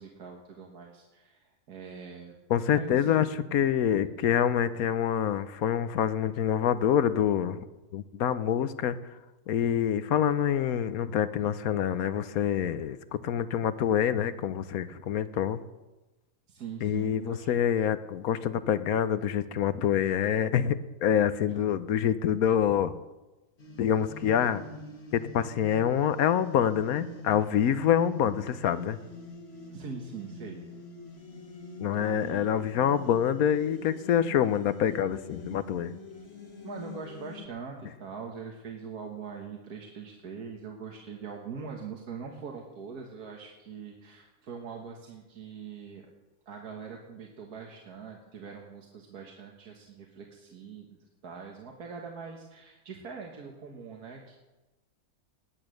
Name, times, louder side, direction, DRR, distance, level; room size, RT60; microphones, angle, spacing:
voice 1, 0.0-2.3 2.7-3.2 16.5-17.5 21.5-21.6 29.7-30.9 32.0-32.5 36.6-46.0 46.5-54.3, right 6 dB, 85° right, 1 dB, 1.9 m, -42 dB
voice 2, 2.5-7.6 7.9-9.0 9.5-15.6 16.8-23.0 23.8-24.6 25.1-29.0 31.8-35.9, left 9 dB, 75° left, 13 dB, 1.2 m, -26 dB
sound 1, 23.6-37.5, left 2 dB, 45° left, 1.8 m, -45 dB
19.0 x 9.0 x 6.4 m, 1.1 s
omnidirectional pair, 1.6 m